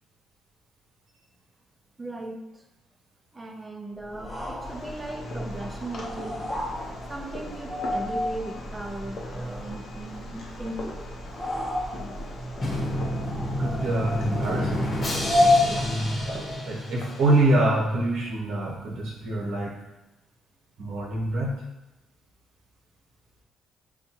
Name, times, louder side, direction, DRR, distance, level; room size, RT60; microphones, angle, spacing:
voice 1, 2.0-2.6 3.3-6.5 7.1-11.1, right 2 dB, 20° right, 2 dB, 0.5 m, -37 dB
sound 1, 4.1-16.7, left 2 dB, 5° left, 0.9 m, -30 dB
Fireworks, 4.6-17.4, left 2 dB, 65° left, 0.8 m, -42 dB
Drum, 12.6-17.5, equal, 40° left, 1.0 m, -30 dB
voice 2, 13.6-15.3 15.6-19.7 20.8-21.5, right 1 dB, 75° right, -3 dB, 1.0 m, -26 dB
6.4 x 2.3 x 2.9 m, 0.95 s
cardioid pair, 90°, 0 cm